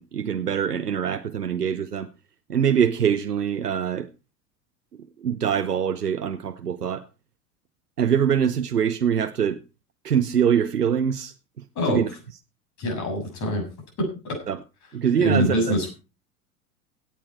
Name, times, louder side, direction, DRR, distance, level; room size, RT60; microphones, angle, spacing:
voice 1, 0.0-2.1 2.5-4.1 5.2-7.1 8.0-9.6 10.0-11.3 11.9-12.1 14.5-14.6 14.9-15.6, right 8 dB, 85° right, 0.8 m, -23 dB
voice 2, 12.8-13.6 14.0-14.4 15.2-15.9, equal, 40° left, 7.2 m, -24 dB
17.0 x 8.7 x 4.4 m
figure-of-eight pair, 80°, 46 cm